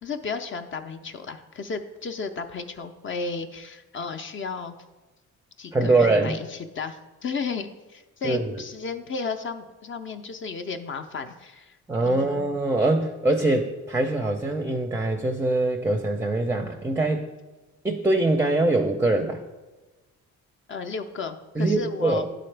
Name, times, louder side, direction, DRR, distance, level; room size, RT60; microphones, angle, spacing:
voice 1, 0.0-4.7 5.6-11.8 12.1-12.5 20.7-22.3, left 4 dB, 40° left, 7 dB, 0.5 m, -33 dB
voice 2, 5.7-6.4 8.2-8.5 11.9-17.3 17.8-19.4 21.6-22.2, right 2 dB, 10° right, 4 dB, 0.5 m, -23 dB
10.5 x 3.8 x 3.3 m, 1.1 s
cardioid pair, 90°, 30 cm